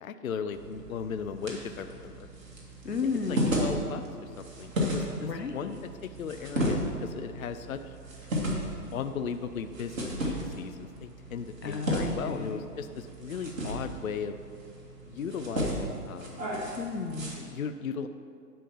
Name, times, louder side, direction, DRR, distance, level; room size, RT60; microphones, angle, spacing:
voice 1, 0.0-2.3 3.3-8.0 8.9-14.4 15.1-16.5 17.4-18.1, left 6 dB, 60° left, 9 dB, 0.5 m, -37 dB
sound 1, 0.5-17.4, equal, 55° right, 2.2 m, -34 dB
voice 2, 2.8-3.7 5.2-5.7 11.6-12.6 16.8-17.3, left 4 dB, 85° left, 6 dB, 0.9 m, -33 dB
10.0 x 3.6 x 6.9 m, 2.3 s
figure-of-eight pair, 135°, 48 cm